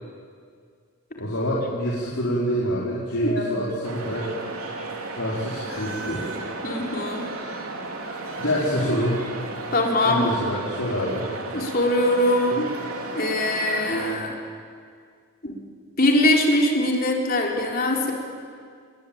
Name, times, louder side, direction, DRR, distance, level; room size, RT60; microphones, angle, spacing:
voice 1, 1.2-4.3 5.1-6.2 8.4-9.2 10.0-11.2, equal, 75° left, -6 dB, 4.7 m, -26 dB
voice 2, 3.2-3.7 6.6-7.3 8.9-9.0 9.7-10.3 11.5-12.7 13.1-14.4 15.4-15.6 16.0-18.1, left 1 dB, 40° left, 0 dB, 4.1 m, -22 dB
sound 1, 3.8-14.2, right 3 dB, 85° right, 3.5 m, -34 dB
28.0 x 21.5 x 8.9 m, 2.1 s
head